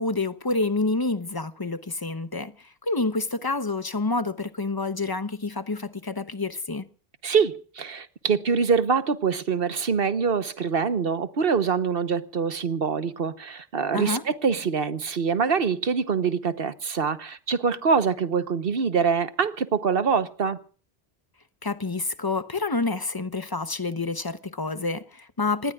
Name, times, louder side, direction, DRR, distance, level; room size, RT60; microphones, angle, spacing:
voice 1, 0.0-6.9 13.9-14.2 21.6-25.7, left 3 dB, 25° left, 0.9 m, -28 dB
voice 2, 7.2-20.6, right 5 dB, 65° right, 1.3 m, -24 dB
26.5 x 19.5 x 2.4 m
omnidirectional pair, 1.0 m